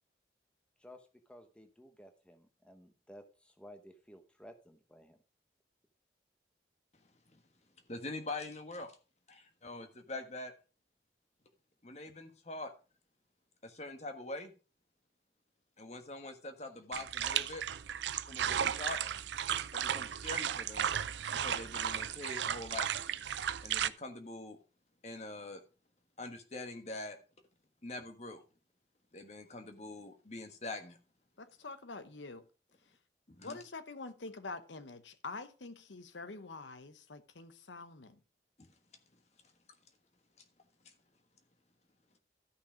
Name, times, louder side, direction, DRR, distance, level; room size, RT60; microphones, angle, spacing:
voice 1, 0.8-5.2, equal, 5° left, 0.9 m, -55 dB
voice 2, 7.9-8.9 9.3-10.5 11.8-12.7 13.6-14.5 15.8-17.6 18.3-19.0 19.7-20.9 21.4-22.9 23.6-24.6 25.0-25.6 26.2-27.2 27.8-28.4 29.1-31.0 33.3-33.6 38.6-38.7, left 2 dB, 35° left, 1.4 m, -44 dB
sound 1, 16.9-23.9, right 9 dB, 80° right, 0.5 m, -35 dB
voice 3, 31.4-32.4 33.4-38.2, left 3 dB, 90° left, 0.9 m, -46 dB
13.0 x 5.7 x 5.1 m
head